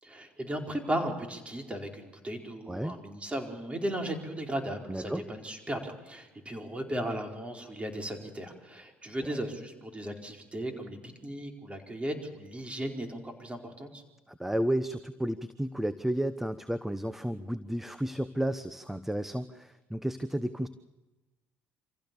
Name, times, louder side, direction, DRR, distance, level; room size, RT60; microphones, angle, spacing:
voice 1, 0.0-14.0, right 1 dB, 20° right, 3 dB, 4.7 m, -36 dB
voice 2, 2.7-3.0 4.9-5.2 9.3-9.4 14.3-20.7, right 1 dB, 5° right, 13 dB, 1.0 m, -32 dB
26.0 x 15.5 x 7.0 m, 1.1 s
hypercardioid pair, 70°, 6 cm